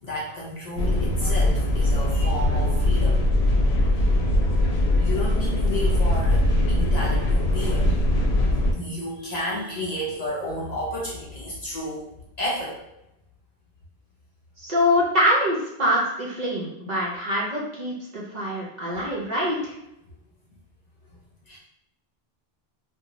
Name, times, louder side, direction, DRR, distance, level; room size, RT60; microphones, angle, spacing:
voice 1, 0.0-3.3 3.9-4.1 5.0-8.0 8.7-12.8 21.5-21.6, left 1 dB, 50° left, -4 dB, 0.5 m, -32 dB
sound 1, 0.8-8.7, left 1 dB, 85° left, 0.8 m, -21 dB
voice 2, 14.6-19.7, left 1 dB, 50° right, -4 dB, 0.6 m, -24 dB
2.5 x 2.2 x 2.9 m, 0.84 s
omnidirectional pair, 1.0 m